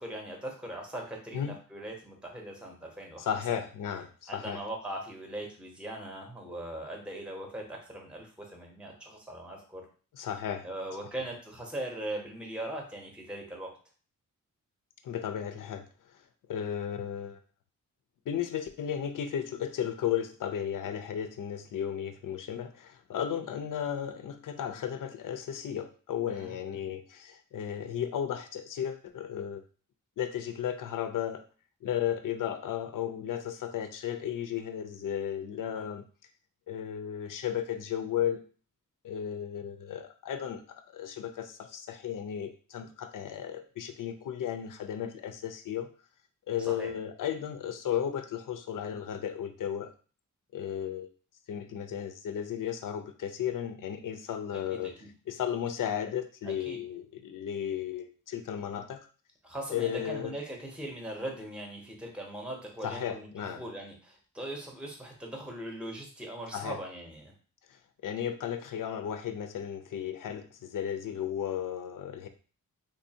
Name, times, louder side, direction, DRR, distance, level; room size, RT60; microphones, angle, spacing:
voice 1, 0.0-3.6 4.3-9.8 10.6-13.7 26.3-26.8 35.6-35.8 46.6-46.9 54.7-55.1 56.4-56.8 59.4-67.3, right 1 dB, 5° right, 1 dB, 0.7 m, -40 dB
voice 2, 3.2-4.6 10.1-10.7 15.0-15.9 16.1-16.2 16.5-17.4 18.3-29.6 30.2-31.4 31.8-36.0 36.7-38.4 39.0-45.9 46.5-49.9 50.5-51.1 51.5-54.9 55.3-59.0 59.7-60.3 62.8-63.6 66.5-66.8 67.7-72.3, left 9 dB, 75° left, 8 dB, 0.5 m, -34 dB
3.8 x 2.6 x 2.7 m, 0.39 s
wide cardioid pair, 140°, 32 cm